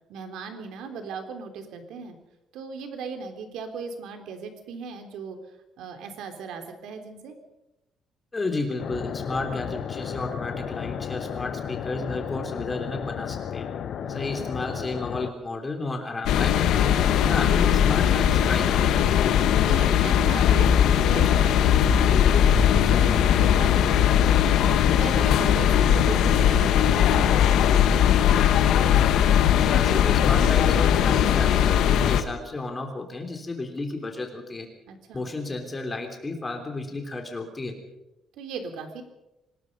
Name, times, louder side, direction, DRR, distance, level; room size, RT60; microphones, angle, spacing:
voice 1, 0.1-2.2 2.5-5.4 5.8-7.3 14.0-14.4 19.6-22.4 22.7-24.6 24.9-27.4 34.9-35.3 38.4-39.0, right 5 dB, 85° right, 6 dB, 3.5 m, -37 dB
voice 2, 8.3-13.7 14.1-17.0 17.2-18.9 29.5-34.7 35.1-37.7, left 2 dB, 15° left, 4 dB, 3.4 m, -32 dB
sound 1, 8.8-15.3, left 8 dB, 50° left, 1.0 m, -33 dB
sound 2, 16.3-32.2, left 9 dB, 75° left, 1.6 m, -19 dB
25.5 x 20.0 x 5.4 m, 0.95 s
cardioid pair, 170°, 0 cm